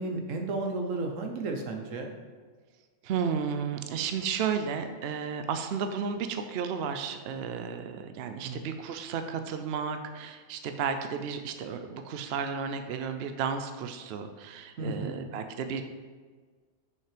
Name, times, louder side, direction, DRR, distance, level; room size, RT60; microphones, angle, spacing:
voice 1, 0.0-2.1 8.4-8.6 14.8-15.2, right 2 dB, 80° right, 3 dB, 1.3 m, -33 dB
voice 2, 3.0-15.8, right 6 dB, 60° right, 7 dB, 0.7 m, -33 dB
6.5 x 5.6 x 5.0 m, 1.5 s
omnidirectional pair, 1.3 m